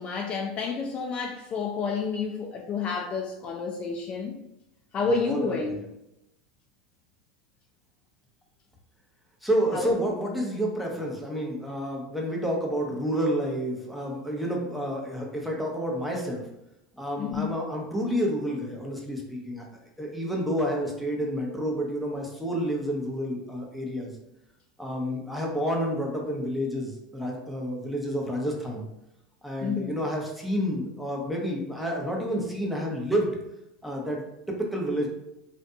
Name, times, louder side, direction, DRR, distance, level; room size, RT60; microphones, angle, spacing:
voice 1, 0.0-4.3 4.9-5.8 9.7-9.9 17.2-17.5 29.6-29.9, left 4 dB, 35° left, 2 dB, 0.3 m, -29 dB
voice 2, 5.1-5.9 9.4-16.5 16.9-19.7 20.0-24.1 24.8-28.9 29.4-33.3 33.8-35.1, equal, ahead, -2 dB, 0.7 m, -29 dB
2.6 x 2.5 x 2.2 m, 0.86 s
hypercardioid pair, 100°, 3 cm